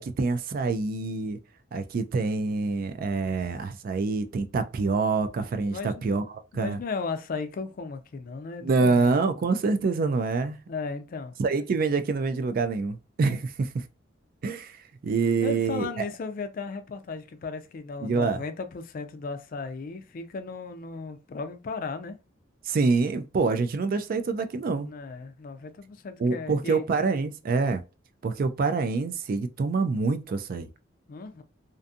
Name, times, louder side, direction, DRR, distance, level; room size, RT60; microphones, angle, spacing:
voice 1, 0.0-1.4 1.7-6.8 8.6-10.6 11.4-13.8 14.4-16.0 18.0-18.4 22.7-24.9 26.2-27.8 28.2-30.7, right 4 dB, 45° right, 0.3 m, -26 dB
voice 2, 5.7-6.0 6.5-9.1 10.7-11.3 15.4-22.2 24.8-26.8 31.1-31.4, left 4 dB, 45° left, 0.3 m, -36 dB
2.5 x 2.3 x 2.6 m
head